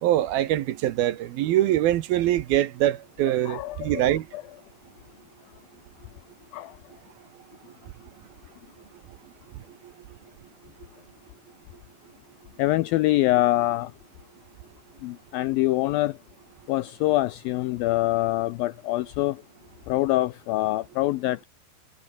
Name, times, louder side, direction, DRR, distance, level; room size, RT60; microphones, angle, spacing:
voice 1, 0.0-4.3, right 13 dB, 70° right, 2.7 m, -23 dB
voice 2, 3.3-4.1 4.3-4.4 6.5-6.7 12.6-13.9 15.0-16.2 16.7-19.4 19.9-21.4, left 17 dB, 85° left, 2.1 m, -24 dB
omnidirectional pair, 4.9 m